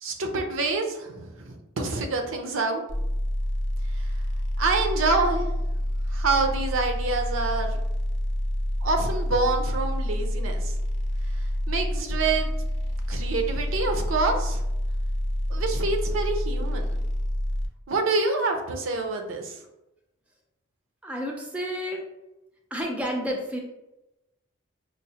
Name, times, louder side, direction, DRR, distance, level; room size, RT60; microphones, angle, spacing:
voice 1, 0.0-2.8 4.0-4.1 4.6-5.5 6.1-7.8 8.8-10.7 11.7-12.5 13.1-14.6 15.5-16.9 17.9-19.6, right 3 dB, 75° right, 4 dB, 0.6 m, -27 dB
sound 1, 2.9-17.7, equal, 60° left, 0.5 m, -28 dB
voice 2, 21.0-22.1 22.7-23.6, equal, 5° right, 0 dB, 0.4 m, -30 dB
5.1 x 2.0 x 2.8 m, 0.95 s
head